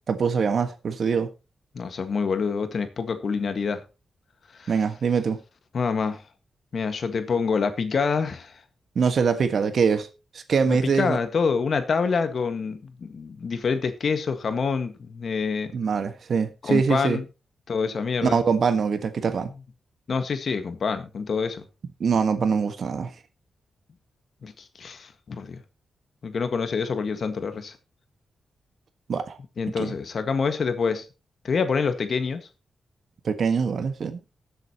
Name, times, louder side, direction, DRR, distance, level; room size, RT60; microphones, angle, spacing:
voice 1, 0.1-1.3 4.7-5.4 8.9-10.1 10.3-11.2 15.7-17.2 18.2-19.5 22.0-23.1 29.1-29.4 29.8-29.9 33.2-34.2, right 6 dB, 60° right, 1.5 m, -23 dB
voice 2, 1.7-3.8 4.5-4.7 5.7-6.2 6.7-8.6 10.7-15.7 16.6-17.2 17.7-18.4 20.1-21.6 24.4-25.6 26.2-27.8 29.6-31.1 31.4-32.5, left 5 dB, 55° left, 1.7 m, -26 dB
19.5 x 7.9 x 3.0 m
cardioid pair, 95°, 0 cm